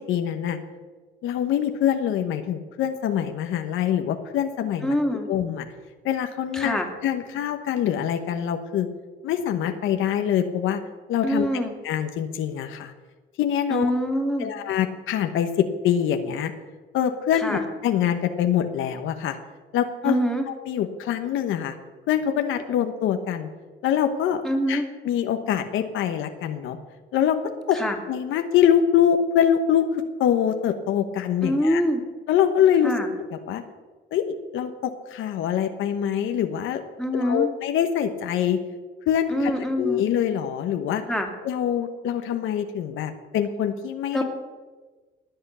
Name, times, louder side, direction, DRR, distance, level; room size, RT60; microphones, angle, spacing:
voice 1, 0.1-0.6 1.2-4.9 5.3-5.7 6.0-6.8 7.0-8.9 9.2-10.8 11.1-12.9 13.4-13.9 14.4-16.5 16.9-19.4 19.7-20.2 20.5-21.7 22.1-23.5 23.8-24.4 24.7-26.8 27.1-27.4 27.7-27.8 28.1-31.8 32.3-32.9 33.2-33.6 34.1-36.8 37.1-38.6 39.1-39.5 39.8-41.0 41.4-44.2, left 9 dB, 85° left, 7 dB, 1.1 m, -24 dB
voice 2, 4.8-5.3 6.5-6.9 11.2-11.7 13.7-14.5 17.3-17.6 20.0-20.4 24.4-24.9 27.7-28.0 31.4-32.0 32.8-33.1 37.0-37.5 39.3-40.1 41.1-41.3 44.1-44.2, equal, ahead, 2 dB, 2.8 m, -24 dB
20.0 x 7.9 x 6.8 m, 1.4 s
cardioid pair, 90°, 20 cm